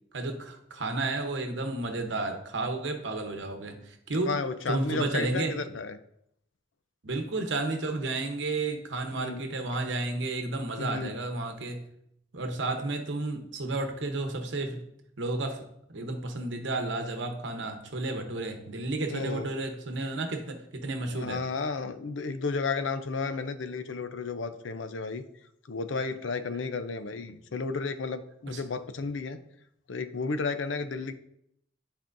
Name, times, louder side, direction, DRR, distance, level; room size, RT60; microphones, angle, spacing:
voice 1, 0.1-4.3 4.7-5.5 7.0-11.8 12.3-14.8 15.2-15.6 15.9-21.4 28.5-28.6, right 2 dB, 70° right, 5 dB, 0.9 m, -32 dB
voice 2, 4.2-6.0 9.2-9.4 10.8-11.1 19.1-19.5 21.1-25.2 25.7-29.4 29.9-31.1, left 4 dB, 80° left, 10 dB, 0.5 m, -32 dB
11.0 x 4.4 x 2.6 m, 0.75 s
head